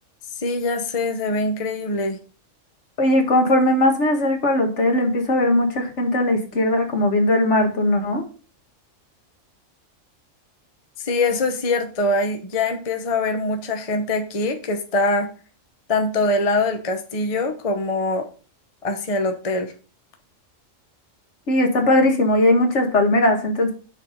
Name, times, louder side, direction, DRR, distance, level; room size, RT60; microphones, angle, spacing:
voice 1, 0.4-2.2 11.0-15.3 15.9-18.3 18.8-19.7, left 2 dB, 30° left, 5 dB, 0.8 m, -23 dB
voice 2, 3.0-8.2 21.5-23.7, left 1 dB, 65° left, 4 dB, 1.7 m, -19 dB
6.6 x 4.6 x 5.2 m, 0.37 s
omnidirectional pair, 1.3 m